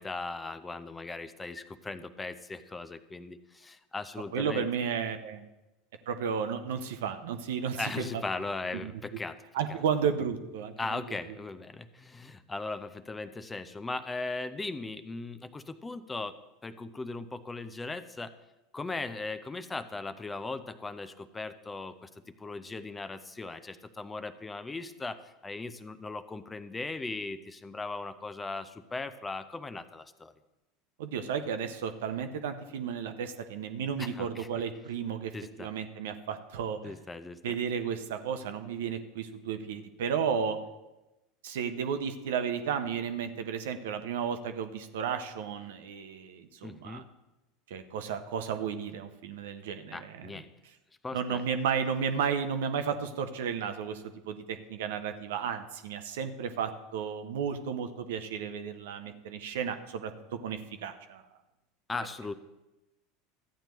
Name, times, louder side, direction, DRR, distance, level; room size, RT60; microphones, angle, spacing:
voice 1, 0.0-4.7 7.8-9.4 9.7-9.8 10.8-18.3 18.7-30.3 34.0-34.5 35.3-35.7 36.8-37.6 46.6-47.0 49.9-50.5 51.0-51.4 61.9-62.3, left 3 dB, 15° left, 12 dB, 0.6 m, -38 dB
voice 2, 4.3-5.4 6.1-8.2 8.7-8.9 9.5-11.0 31.0-35.3 35.6-36.9 37.4-40.6 41.4-47.0 47.7-50.4 51.1-61.2, right 7 dB, 65° right, 8 dB, 0.8 m, -33 dB
14.0 x 8.9 x 3.1 m, 1.0 s
figure-of-eight pair, 80°, 0 cm